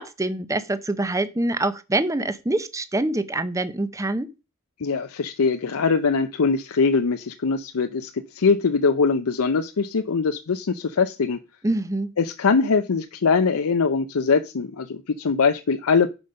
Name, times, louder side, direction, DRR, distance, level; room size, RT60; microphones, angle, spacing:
voice 1, 0.0-4.3 11.6-12.1, right 2 dB, 15° right, 0.6 m, -25 dB
voice 2, 4.8-8.1 8.3-11.4 12.2-16.1, left 5 dB, 90° left, 0.6 m, -22 dB
11.0 x 5.3 x 5.3 m
head